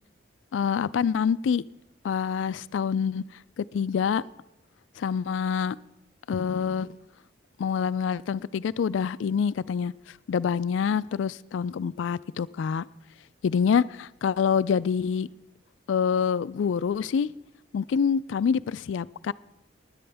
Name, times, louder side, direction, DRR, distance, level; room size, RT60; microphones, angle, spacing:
voice 1, 0.5-1.6 2.0-3.2 3.6-4.2 5.0-5.8 6.3-6.9 7.6-9.9 10.3-12.8 13.4-15.3 15.9-17.3 17.7-19.3, left 6 dB, 85° left, 18 dB, 0.3 m, -26 dB
16.5 x 10.5 x 3.4 m, 0.90 s
head